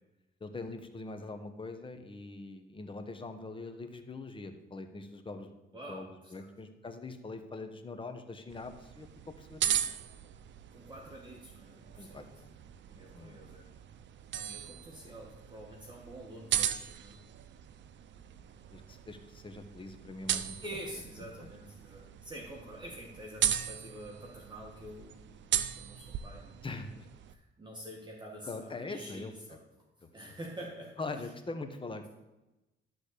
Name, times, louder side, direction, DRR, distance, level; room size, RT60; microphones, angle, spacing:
voice 1, 0.4-5.6 5.9-9.1 9.4-9.8 12.0-12.5 13.1-13.4 18.7-20.6 21.4-21.5 26.6-27.1 28.4-29.6 30.0-30.4 31.0-32.1, left 3 dB, 25° left, 7 dB, 1.2 m, -43 dB
voice 2, 5.7-6.5 10.7-12.3 12.9-13.7 14.3-17.2 20.6-25.4 25.7-26.6 27.3-29.6 30.1-30.9 31.2-31.3, right 1 dB, 20° right, -2 dB, 1.7 m, -47 dB
sound 1, 8.5-27.3, right 10 dB, 65° right, 0.6 m, -38 dB
12.0 x 4.1 x 6.8 m, 1.0 s
cardioid pair, 90°, 20 cm